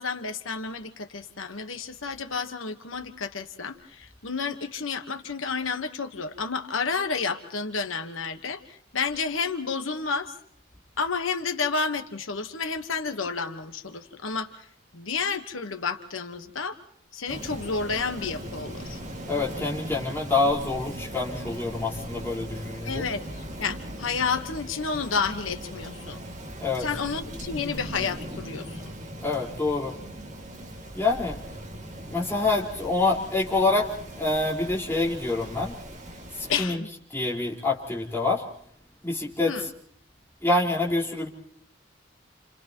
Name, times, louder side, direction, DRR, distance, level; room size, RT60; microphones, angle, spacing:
voice 1, 0.0-10.3 11.0-14.7 14.9-16.8 17.1-19.0 22.8-26.2 26.8-28.9 36.5-36.9 39.4-39.7, left 5 dB, 90° left, 7 dB, 1.3 m, -31 dB
Rain, 17.3-36.6, equal, 35° right, 2.5 m, -39 dB
voice 2, 19.3-23.0 26.6-26.8 29.2-29.9 30.9-31.4 32.1-33.9 34.2-35.7 36.4-36.8 37.1-38.4 39.0-39.7 40.4-41.3, left 3 dB, 10° left, -4 dB, 4.7 m, -26 dB
30.0 x 29.0 x 3.0 m, 0.65 s
head